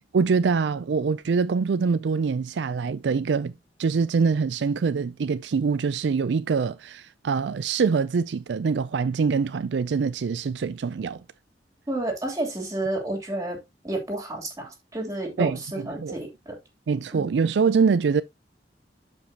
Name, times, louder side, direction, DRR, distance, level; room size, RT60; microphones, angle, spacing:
voice 1, 0.1-3.5 3.8-11.2 15.4-16.2 16.9-18.2, right 5 dB, 75° right, 0.4 m, -24 dB
voice 2, 11.9-13.6 13.8-16.6 17.1-17.3, right 2 dB, 20° right, 3.1 m, -30 dB
11.5 x 5.4 x 2.8 m
head